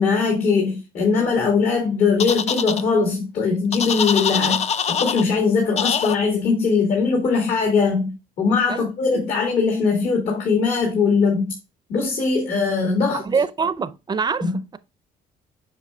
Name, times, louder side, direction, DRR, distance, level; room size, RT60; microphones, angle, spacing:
voice 1, 0.0-11.5 11.9-13.3 14.4-14.6, left 4 dB, 60° left, 2.3 m, -21 dB
sound 1, 2.2-2.8 3.7-5.2 5.8-6.2, left 7 dB, 40° left, 0.5 m, -23 dB
voice 2, 13.1-14.8, right 5 dB, 25° right, 0.5 m, -25 dB
7.4 x 5.7 x 2.3 m
cardioid pair, 110°, 17 cm